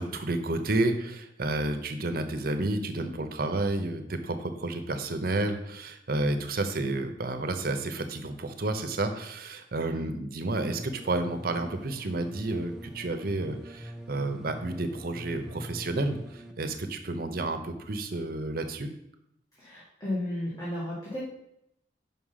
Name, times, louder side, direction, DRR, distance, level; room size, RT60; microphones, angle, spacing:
voice 1, 0.0-18.9, right 2 dB, 55° right, 7 dB, 0.7 m, -31 dB
sound 1, 10.5-16.5, equal, 5° right, 0.5 m, -44 dB
voice 2, 19.6-21.2, left 1 dB, 20° left, -8 dB, 1.7 m, -33 dB
5.5 x 5.0 x 5.6 m, 0.79 s
head